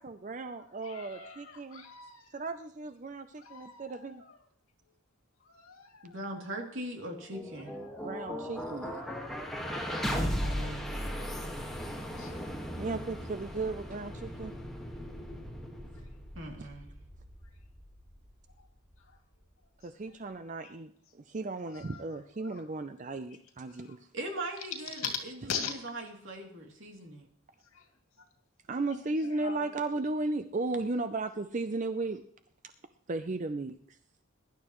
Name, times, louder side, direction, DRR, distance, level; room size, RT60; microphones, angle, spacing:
voice 1, 0.0-1.8 2.3-4.2 8.0-9.0 12.8-14.5 16.6-16.7 19.8-24.0 28.7-32.2 33.1-34.0, right 3 dB, 35° right, 9 dB, 0.5 m, -35 dB
voice 2, 0.8-2.3 3.4-4.4 5.4-6.2 7.8-8.1 12.2-12.4 18.6-18.7 19.1-19.2 20.6-20.7 21.7-22.6 23.7-24.0 24.9-25.2 25.5-25.8 27.7-27.8 28.9-29.0 29.4-30.0, left 6 dB, 75° left, 2 dB, 2.5 m, -42 dB
voice 3, 6.0-7.8 10.2-11.0 16.3-16.9 24.1-25.3 25.7-27.3, right 1 dB, 65° right, 1 dB, 2.9 m, -40 dB
sound 1, 7.1-19.1, equal, ahead, 1.6 m, -37 dB
21.5 x 11.5 x 3.1 m, 0.64 s
head